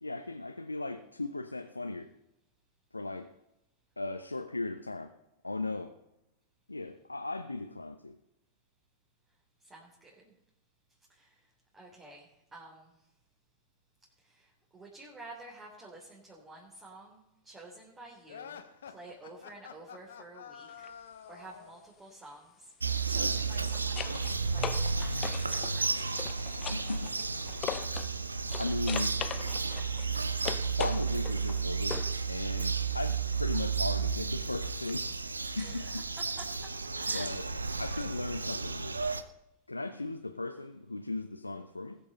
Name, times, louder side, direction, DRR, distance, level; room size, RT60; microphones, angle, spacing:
voice 1, 0.0-2.1 2.9-3.3 4.0-5.1 5.4-5.9 6.7-8.1 26.7-27.1 28.6-29.1 30.7-32.0 32.3-35.1 35.6-36.0 37.1-37.4 37.8-39.0 39.7-42.0, left 2 dB, 85° left, 7 dB, 0.7 m, -37 dB
voice 2, 9.6-10.3 11.1-11.4 11.7-13.0 14.2-18.6 18.9-26.3 35.5-36.7 37.0-37.3 37.9-38.1, right 2 dB, 15° right, -3 dB, 3.4 m, -51 dB
sound 1, 18.3-21.8, left 7 dB, 65° left, 1.1 m, -48 dB
sound 2, 20.7-20.9 23.2-28.2 28.5-32.2 34.9-35.0, left 11 dB, 30° left, 0.6 m, -41 dB
Bird vocalization bird call bird song, 22.8-39.2, right 5 dB, 80° right, 0.7 m, -32 dB
20.0 x 6.8 x 5.4 m, 0.87 s
figure-of-eight pair, 90°, 0 cm